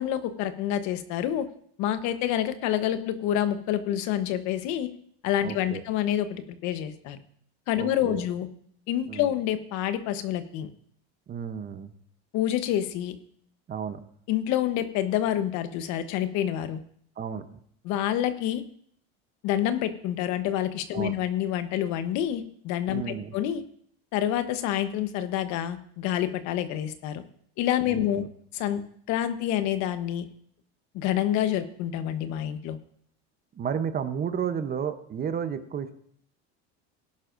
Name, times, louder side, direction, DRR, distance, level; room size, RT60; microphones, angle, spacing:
voice 1, 0.0-1.5 1.8-4.9 5.2-7.2 7.7-8.5 8.9-10.7 12.3-13.2 14.3-16.8 17.8-18.6 19.4-23.6 24.1-27.2 27.6-28.2 28.5-28.8 29.1-30.3 30.9-32.8, left 11 dB, 60° left, 10 dB, 1.1 m, -27 dB
voice 2, 5.4-5.8 7.8-8.2 9.1-9.3 11.3-11.9 13.7-14.0 17.2-17.4 20.9-21.1 22.9-23.3 27.9-28.3 33.5-35.9, right 7 dB, 30° right, 10 dB, 0.9 m, -32 dB
18.0 x 11.0 x 2.6 m, 0.64 s
supercardioid pair, 125°, 32 cm